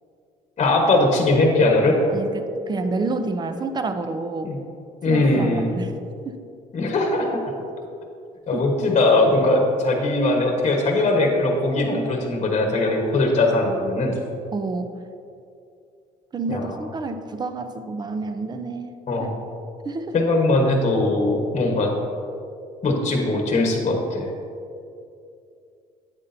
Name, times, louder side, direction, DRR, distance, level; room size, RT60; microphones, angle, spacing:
voice 1, 0.6-2.0 4.4-4.6 5.0-5.7 6.7-7.4 8.5-14.2 16.5-16.7 19.1-19.4 20.1-21.9 22.8-24.3, left 2 dB, 40° left, 2 dB, 1.2 m, -20 dB
voice 2, 2.1-4.5 5.1-6.0 6.2-6.4 8.5-8.7 14.5-15.0 16.3-18.9 19.2-19.3 19.8-20.2, right 3 dB, 25° right, 8 dB, 0.5 m, -29 dB
8.7 x 8.2 x 2.7 m, 2.6 s
cardioid pair, 110°, 17 cm